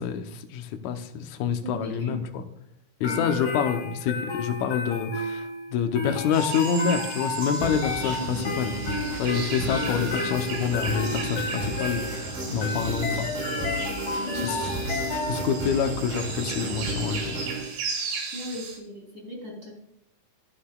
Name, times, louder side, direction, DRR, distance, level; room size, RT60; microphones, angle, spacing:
voice 1, 0.0-2.4 3.0-8.7 9.2-13.3 14.3-14.7 15.3-17.4, left 7 dB, 75° left, 6 dB, 1.7 m, -27 dB
voice 2, 1.6-2.2 3.0-3.4 8.2-8.5 14.2-14.8 18.3-19.8, left 2 dB, 25° right, -1 dB, 3.4 m, -37 dB
sound 1, 3.0-15.8, left 3 dB, 45° left, 2.7 m, -32 dB
sound 2, 6.3-18.8, right 4 dB, 85° right, 4.1 m, -37 dB
sound 3, 7.6-17.6, right 2 dB, 65° right, 5.8 m, -33 dB
11.5 x 11.5 x 2.3 m, 0.77 s
omnidirectional pair, 4.4 m